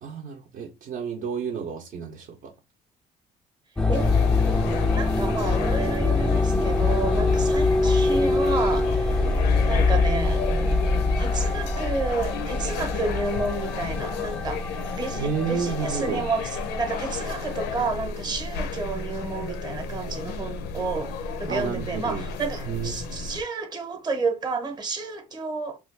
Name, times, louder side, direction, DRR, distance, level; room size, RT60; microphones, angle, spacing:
voice 1, 0.0-2.5 9.2-9.4 15.2-16.3 21.5-22.2 22.7-23.0, right 6 dB, 55° right, 0.6 m, -31 dB
sound 1, 3.8-17.9, left 3 dB, 5° left, 0.3 m, -24 dB
sound 2, 3.9-23.4, left 4 dB, 90° left, 0.6 m, -33 dB
voice 2, 4.9-10.4 11.2-14.6 14.9-21.1 21.4-25.8, right 3 dB, 25° right, 0.8 m, -31 dB
3.3 x 2.3 x 3.2 m
cardioid pair, 110°, 17 cm